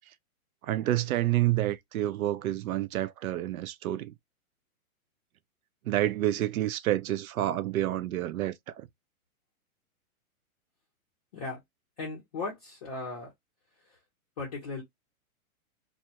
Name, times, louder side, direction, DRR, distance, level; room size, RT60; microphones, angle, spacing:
voice 1, 0.6-4.1 5.9-8.9, right 14 dB, 75° right, 0.5 m, -29 dB
voice 2, 12.0-13.3 13.8-14.0 14.4-14.8, left 3 dB, 25° left, 0.6 m, -37 dB
2.2 x 2.1 x 2.7 m
hypercardioid pair, 170°, 43 cm